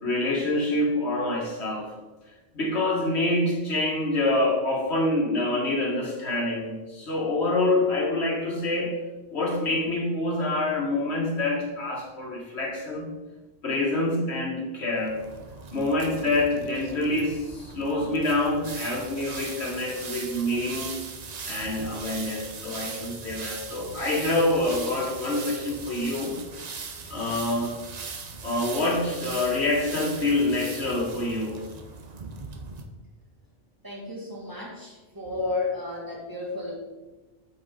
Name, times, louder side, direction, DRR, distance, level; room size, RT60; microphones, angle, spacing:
voice 1, 0.0-1.9 2.5-9.0 9.3-13.1 13.6-15.2 15.7-21.0 21.5-26.3 27.1-27.7 28.4-31.6, left 2 dB, 80° left, -2 dB, 2.0 m, -26 dB
sound 1, 15.0-32.8, right 4 dB, 45° right, 0.7 m, -39 dB
voice 2, 33.8-36.8, left 3 dB, 20° right, -4 dB, 1.9 m, -32 dB
8.5 x 5.5 x 3.7 m, 1.2 s
omnidirectional pair, 1.1 m